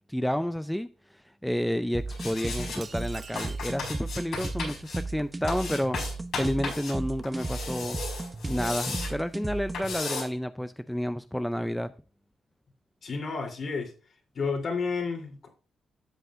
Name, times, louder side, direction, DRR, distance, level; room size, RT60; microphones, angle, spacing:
voice 1, 0.1-6.0 6.3-8.0 8.5-11.9, equal, 5° left, 0.5 m, -30 dB
sound 1, 1.9-9.9, right 2 dB, 20° right, 0.9 m, -35 dB
sound 2, 2.1-2.8 3.3-5.0 5.5-6.9 7.2-9.1 9.7-10.2, left 4 dB, 80° left, 4.8 m, -35 dB
sound 3, 2.8-3.8, right 5 dB, 50° right, 1.0 m, -45 dB
voice 2, 13.0-13.9 14.3-15.5, left 4 dB, 60° left, 3.1 m, -31 dB
12.5 x 7.5 x 2.5 m
supercardioid pair, 55°, 0 cm